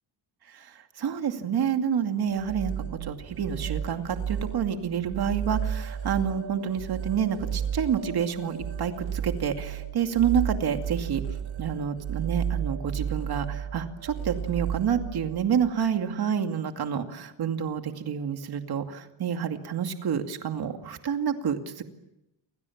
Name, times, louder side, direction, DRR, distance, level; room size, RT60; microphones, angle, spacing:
voice 1, 0.5-2.7 3.0-11.2 11.6-21.8, right 8 dB, 50° right, 6 dB, 2.4 m, -28 dB
sound 1, 2.4-15.7, right 8 dB, 70° right, 6.6 m, -33 dB
30.0 x 25.0 x 7.3 m, 0.88 s
wide cardioid pair, 180°, 48 cm